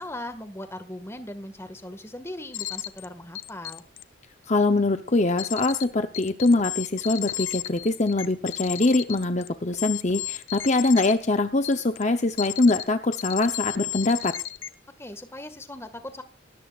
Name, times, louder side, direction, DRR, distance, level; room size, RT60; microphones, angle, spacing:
voice 1, 0.0-3.8 15.0-16.2, left 1 dB, 15° left, 8 dB, 1.8 m, -39 dB
sound 1, 2.5-3.1 3.4-4.0 5.4-5.8 6.1-11.1 11.6-12.0 12.4-12.8 13.1-14.7, left 13 dB, 75° left, 1.0 m, -33 dB
voice 2, 4.5-14.3, left 2 dB, 35° left, 7 dB, 0.8 m, -23 dB
20.0 x 17.5 x 2.5 m, 0.36 s
head